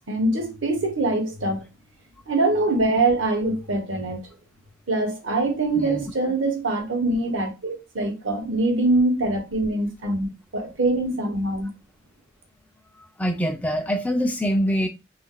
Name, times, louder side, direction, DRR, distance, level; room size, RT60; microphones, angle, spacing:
voice 1, 0.1-1.6 2.3-4.2 4.9-11.7, right 2 dB, 70° right, 0.9 m, -23 dB
voice 2, 5.8-6.1 13.2-14.9, equal, 5° left, 0.3 m, -24 dB
2.4 x 2.2 x 3.7 m
head